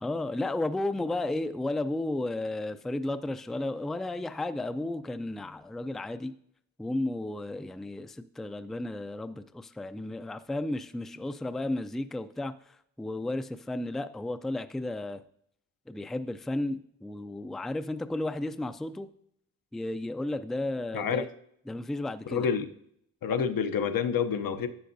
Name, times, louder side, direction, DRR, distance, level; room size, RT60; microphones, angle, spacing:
voice 1, 0.0-6.3 6.8-12.5 13.0-15.2 15.9-19.1 19.7-21.3 21.7-22.5, left 2 dB, ahead, 11 dB, 0.3 m, -33 dB
voice 2, 20.9-21.2 22.3-22.7 23.2-24.7, left 7 dB, 80° left, 8 dB, 0.8 m, -28 dB
11.5 x 8.4 x 2.6 m, 0.69 s
wide cardioid pair, 95°, 34 cm